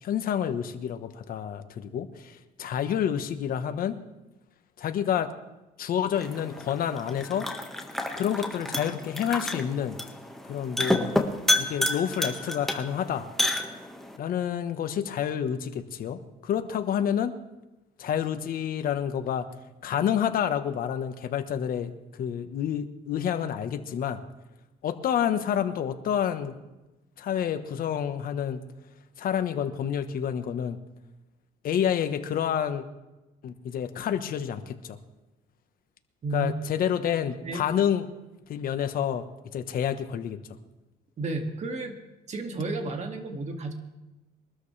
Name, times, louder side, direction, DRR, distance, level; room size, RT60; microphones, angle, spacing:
voice 1, 0.0-4.0 4.8-5.3 5.8-7.5 8.2-10.0 10.5-11.1 11.6-13.2 14.1-17.3 18.0-19.5 19.8-24.2 24.8-26.5 27.2-28.6 29.2-30.8 31.6-32.8 33.4-34.7 36.3-38.1 38.5-39.2 39.5-40.4, left 9 dB, 60° left, 8 dB, 1.3 m, -28 dB
sound 1, 6.1-14.2, left 1 dB, ahead, 1.6 m, -30 dB
voice 2, 36.2-36.5 37.4-37.6 41.2-41.9 42.3-43.7, right 3 dB, 40° right, 4 dB, 2.3 m, -32 dB
23.0 x 13.0 x 3.4 m, 1.0 s
cardioid pair, 110°, 17 cm